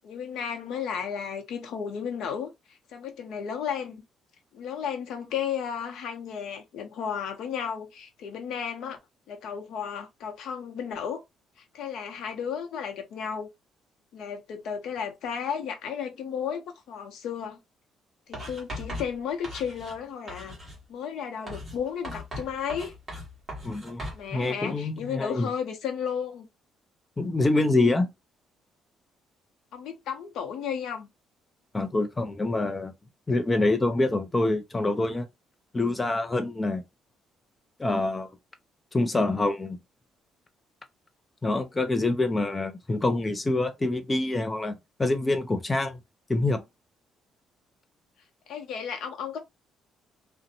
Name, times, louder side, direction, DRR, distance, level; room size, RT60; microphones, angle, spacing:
voice 1, 0.0-4.0 4.5-9.0 9.3-11.2 11.7-13.5 14.1-17.6 18.3-20.5 20.9-23.0 24.1-26.4 29.7-31.1 48.5-49.4, left 7 dB, 65° left, 0.7 m, -33 dB
Writing, 18.3-20.0 20.3-20.8 21.5-24.2, equal, 20° right, 1.2 m, -38 dB
voice 2, 23.6-24.0 24.3-25.5 27.2-28.1 31.7-32.9 33.3-35.3 35.7-36.8 37.8-38.3 38.9-39.8 41.4-46.0 46.3-46.6, left 2 dB, 15° left, 0.4 m, -26 dB
2.5 x 2.1 x 2.7 m
cardioid pair, 170°, 0 cm